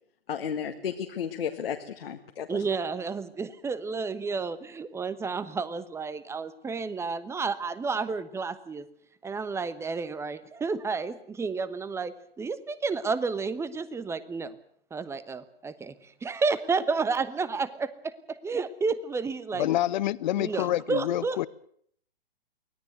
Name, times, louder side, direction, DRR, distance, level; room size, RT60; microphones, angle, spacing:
voice 1, 0.3-2.6, left 8 dB, 70° left, 3 dB, 1.9 m, -33 dB
voice 2, 2.5-8.9 9.2-14.5 14.9-19.7 20.4-21.4, right 4 dB, 10° right, 15 dB, 1.1 m, -31 dB
voice 3, 19.6-21.5, left 14 dB, 50° left, 20 dB, 0.9 m, -27 dB
24.0 x 17.0 x 8.0 m, 0.64 s
hypercardioid pair, 125°, 30 cm